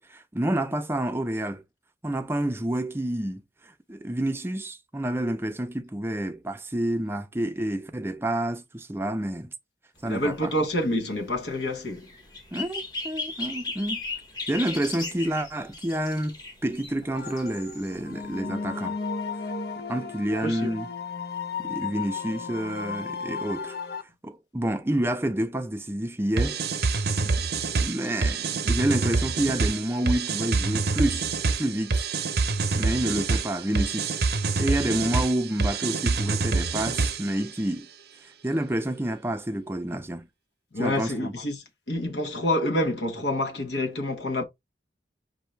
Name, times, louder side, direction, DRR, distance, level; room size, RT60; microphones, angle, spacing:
voice 1, 0.0-1.6 2.0-9.5 10.0-10.5 12.5-14.0 14.5-19.0 19.9-20.9 21.6-23.8 24.2-26.6 27.7-32.1 32.7-34.2 34.6-37.9 38.4-40.3 40.8-41.3, right 1 dB, 15° right, 0.5 m, -29 dB
voice 2, 10.0-12.1 20.4-20.7 40.7-44.4, left 1 dB, 80° left, 1.3 m, -27 dB
sound 1, 10.0-18.4, left 3 dB, 20° left, 1.2 m, -37 dB
sound 2, 17.2-24.0, left 5 dB, 60° left, 0.8 m, -34 dB
sound 3, 26.4-37.4, right 4 dB, 60° right, 0.6 m, -26 dB
5.5 x 2.7 x 3.2 m
head